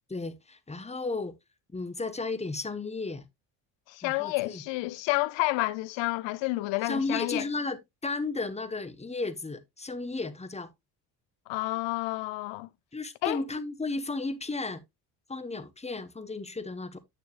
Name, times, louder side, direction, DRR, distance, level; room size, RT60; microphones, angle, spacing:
voice 1, 0.1-1.3 1.7-3.2 4.0-4.6 6.8-10.7 12.9-14.8 15.3-17.0, left 3 dB, 15° left, 1.2 m, -34 dB
voice 2, 3.9-7.5 11.5-12.7 13.2-13.4, left 20 dB, 70° left, 0.8 m, -30 dB
9.1 x 6.6 x 2.5 m
supercardioid pair, 65°, 45 cm